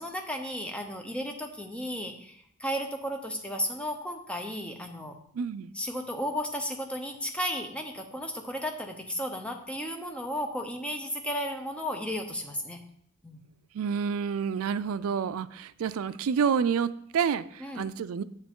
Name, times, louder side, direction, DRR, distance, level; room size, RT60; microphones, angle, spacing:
voice 1, 0.0-5.1 5.7-12.8 13.2-13.4 17.6-17.9, equal, 5° left, 4 dB, 0.7 m, -34 dB
voice 2, 5.3-5.7 13.7-18.2, right 6 dB, 80° right, 16 dB, 0.4 m, -29 dB
7.3 x 6.6 x 3.7 m, 0.68 s
head